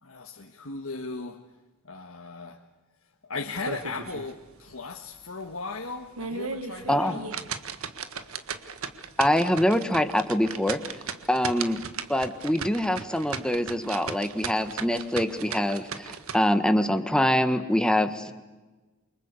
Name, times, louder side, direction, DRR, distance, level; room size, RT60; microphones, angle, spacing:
voice 1, 0.0-1.5 1.8-2.6 3.2-7.3, left 3 dB, 75° left, 1.8 m, -37 dB
sound 1, 3.6-4.3 4.7-4.8 5.3-5.4 6.0-16.4, right 5 dB, 90° right, 1.6 m, -36 dB
voice 2, 9.2-10.8 11.3-11.8 12.1-18.3, left 1 dB, 5° left, 1.5 m, -24 dB
28.0 x 24.5 x 8.2 m
head